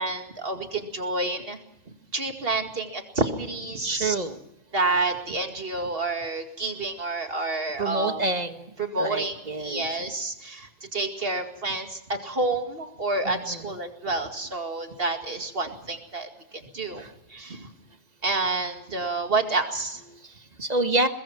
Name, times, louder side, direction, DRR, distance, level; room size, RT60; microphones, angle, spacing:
voice 1, 0.0-1.6 2.1-4.2 4.7-8.2 8.8-16.3 16.7-17.7 18.2-20.0, right 3 dB, 50° right, 5 dB, 2.4 m, -29 dB
voice 2, 3.8-4.4 7.8-8.7 9.0-9.9 13.2-13.7 17.0-17.1 20.1-21.1, right 2 dB, 35° right, 8 dB, 1.5 m, -28 dB
22.0 x 21.5 x 5.9 m, 0.90 s
omnidirectional pair, 1.3 m